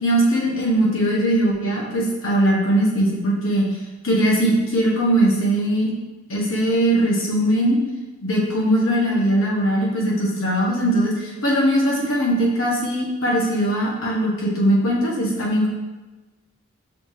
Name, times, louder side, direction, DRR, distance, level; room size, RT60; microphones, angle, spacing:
voice 1, 0.0-3.7 4.0-5.9 6.3-7.8 8.2-15.7, right 1 dB, 80° left, -4 dB, 1.2 m, -20 dB
5.8 x 2.8 x 3.2 m, 1.2 s
head